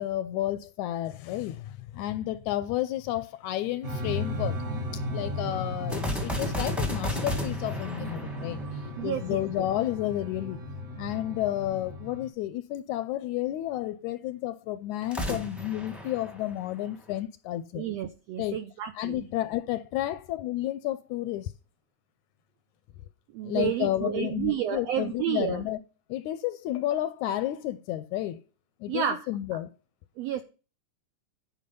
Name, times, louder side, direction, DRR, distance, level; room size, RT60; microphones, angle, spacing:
voice 1, 0.0-4.6 5.1-10.6 11.0-17.9 18.4-18.6 19.0-21.5 23.4-25.8 26.1-28.4 28.8-29.7, left 13 dB, 80° left, 1.8 m, -31 dB
sound 1, 3.8-12.3, left 1 dB, 35° right, 1.7 m, -35 dB
sound 2, 5.9-9.3 15.0-17.1, left 1 dB, ahead, 0.7 m, -33 dB
voice 2, 9.0-9.4 17.7-19.3 23.3-25.6 28.9-29.3 30.2-30.4, right 11 dB, 80° right, 1.5 m, -31 dB
10.0 x 5.5 x 5.4 m
omnidirectional pair, 3.8 m